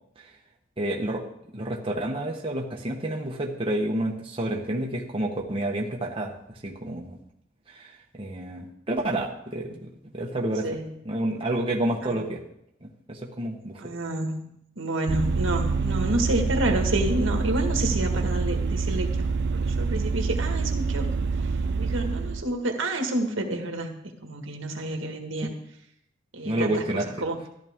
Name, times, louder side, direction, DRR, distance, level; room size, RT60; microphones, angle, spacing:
voice 1, 0.8-1.2 1.5-7.2 7.7-10.7 11.0-12.4 12.8-13.8 25.4-25.5 26.4-27.1, right 1 dB, 25° right, -1 dB, 1.2 m, -29 dB
voice 2, 10.6-10.9 12.0-12.2 13.8-19.1 19.5-21.1 21.8-25.5 26.3-26.8 27.2-27.4, right 1 dB, 75° right, 3 dB, 1.8 m, -29 dB
Vehicle, 15.1-22.4, right 4 dB, 55° right, 0.5 m, -26 dB
14.0 x 11.5 x 3.7 m, 0.75 s
head